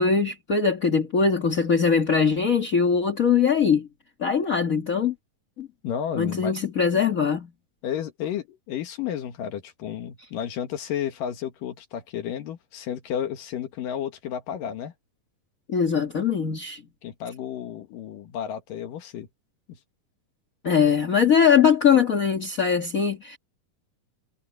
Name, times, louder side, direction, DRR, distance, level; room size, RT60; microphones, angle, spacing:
voice 1, 0.0-3.9 4.2-5.1 5.6-5.7 6.1-7.5 15.7-16.8 20.6-23.4, left 6 dB, 35° left, 1.5 m, -21 dB
voice 2, 5.8-6.5 7.8-14.9 17.0-19.3 19.7-19.8, left 9 dB, 70° left, 3.0 m, -32 dB
omnidirectional pair, 4.2 m